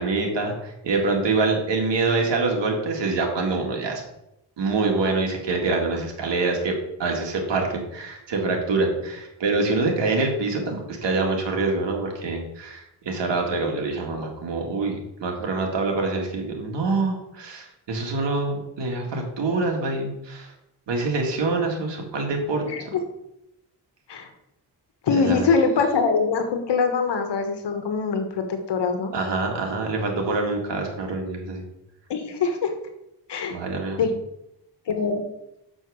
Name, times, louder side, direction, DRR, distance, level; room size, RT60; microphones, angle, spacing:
voice 1, 0.0-4.0 4.6-6.7 7.0-20.5 20.9-22.6 25.1-25.5 29.1-31.6 33.5-34.0, right 3 dB, 90° right, 1 dB, 2.1 m, -25 dB
voice 2, 25.0-29.1 32.1-32.7 33.3-33.6 34.0-34.1 34.9-35.2, left 5 dB, 80° left, 6 dB, 1.3 m, -23 dB
6.5 x 6.2 x 6.4 m, 0.84 s
cardioid pair, 90°, 42 cm